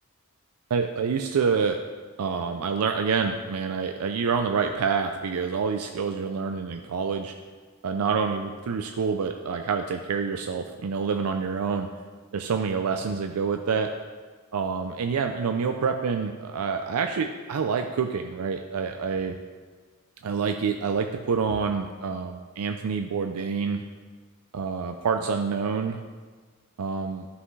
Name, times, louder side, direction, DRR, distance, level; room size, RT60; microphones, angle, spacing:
voice 1, 0.7-1.8 2.2-7.3 7.8-11.9 12.3-13.9 14.5-19.4 20.2-23.8 24.5-26.0 26.8-27.3, right 5 dB, 85° right, 5 dB, 0.4 m, -27 dB
12.0 x 5.6 x 3.2 m, 1.5 s
head